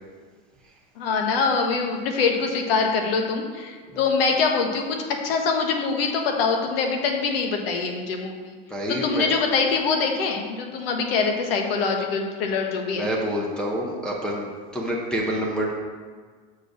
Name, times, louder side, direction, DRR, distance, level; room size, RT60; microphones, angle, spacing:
voice 1, 1.0-5.0 5.2-8.6 8.9-13.1, left 4 dB, 75° left, 3 dB, 1.3 m, -24 dB
voice 2, 8.7-9.3 12.9-15.7, equal, 5° left, -5 dB, 0.7 m, -27 dB
6.5 x 4.8 x 5.9 m, 1.5 s
supercardioid pair, 155°, 29 cm